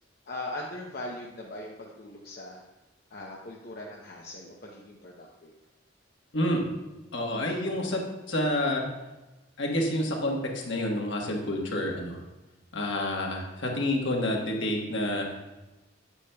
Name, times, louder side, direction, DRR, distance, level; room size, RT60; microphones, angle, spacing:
voice 1, 0.3-2.6 3.1-5.5, left 1 dB, 50° left, -2 dB, 0.7 m, -40 dB
voice 2, 7.1-8.8 9.6-12.2 12.7-15.3, left 1 dB, 65° left, 0 dB, 1.3 m, -28 dB
8.3 x 8.1 x 2.3 m, 1.1 s
head